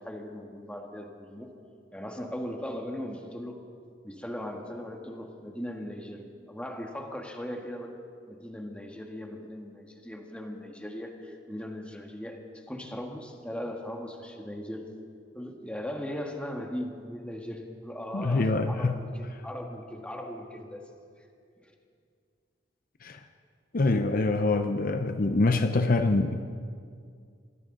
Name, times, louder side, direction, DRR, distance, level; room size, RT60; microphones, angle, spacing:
voice 1, 0.0-1.5 1.9-3.6 4.0-8.0 8.3-15.0 15.3-20.9 21.6-21.7, equal, 5° left, 2 dB, 1.6 m, -38 dB
voice 2, 18.1-19.0 23.0-23.2 23.7-26.4, left 3 dB, 50° left, 7 dB, 0.6 m, -25 dB
23.5 x 15.0 x 3.9 m, 2.2 s
head